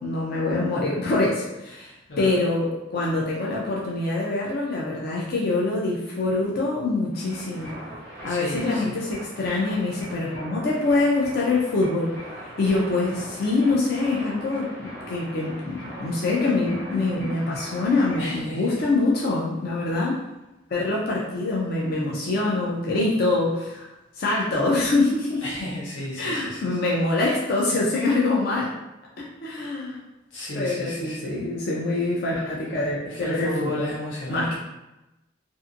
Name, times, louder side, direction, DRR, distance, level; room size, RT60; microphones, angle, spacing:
voice 1, 0.0-7.7 8.2-12.1 12.6-20.2 20.7-23.9 24.2-25.4 26.2-28.7 29.4-30.0 30.5-33.9 34.3-34.5, left 2 dB, 50° left, -4 dB, 0.5 m, -24 dB
voice 2, 2.1-2.4 8.3-9.0 18.2-18.8 25.4-26.8 30.3-31.3 33.1-34.6, left 1 dB, 80° left, -5 dB, 0.9 m, -33 dB
sound 1, 7.1-18.4, equal, 10° left, 0.8 m, -40 dB
2.6 x 2.5 x 2.5 m, 0.96 s
head